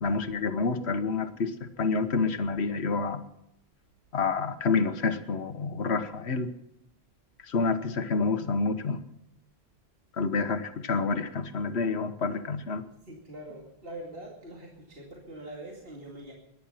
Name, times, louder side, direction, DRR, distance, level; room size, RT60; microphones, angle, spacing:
voice 1, 0.0-3.2 4.1-6.5 7.5-9.0 10.2-12.8, left 4 dB, 85° left, 9 dB, 1.4 m, -28 dB
voice 2, 13.0-16.3, right 1 dB, 65° right, -2 dB, 2.7 m, -43 dB
22.0 x 11.0 x 5.6 m, 0.84 s
omnidirectional pair, 1.1 m